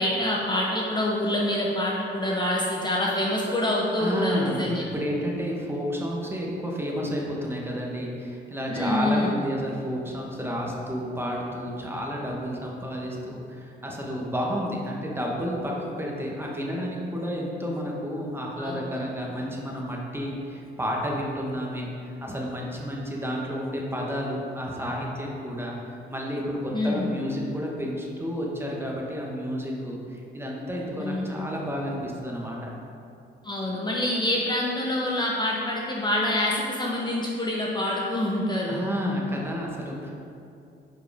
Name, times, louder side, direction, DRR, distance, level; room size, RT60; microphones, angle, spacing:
voice 1, 0.0-4.8 8.7-9.3 18.6-18.8 26.7-27.1 31.0-31.5 33.4-38.8, left 1 dB, 20° left, -3 dB, 0.8 m, -26 dB
voice 2, 4.0-32.7 38.7-40.1, equal, 10° right, -2 dB, 1.3 m, -31 dB
8.7 x 4.9 x 3.5 m, 2.6 s
cardioid pair, 90°, 20 cm